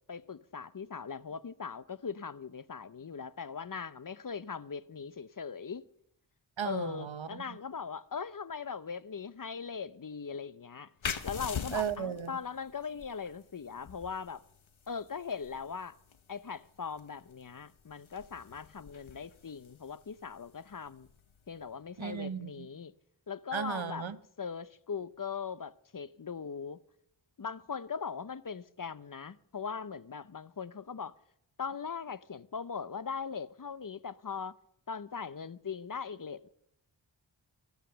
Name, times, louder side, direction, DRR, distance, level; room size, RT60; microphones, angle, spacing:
voice 1, 0.1-5.8 6.6-10.9 11.2-14.4 14.9-16.0 16.3-21.1 21.5-22.9 23.3-24.1 24.4-26.8 27.4-31.1 31.6-34.5 34.9-36.5, left 6 dB, 45° left, 0.6 m, -40 dB
voice 2, 6.6-7.3 11.7-12.3 22.0-22.7 23.5-24.2, right 8 dB, 75° right, 0.9 m, -35 dB
sound 1, 11.0-22.3, left 7 dB, 85° left, 1.0 m, -45 dB
22.5 x 8.2 x 6.8 m
wide cardioid pair, 60°, 46 cm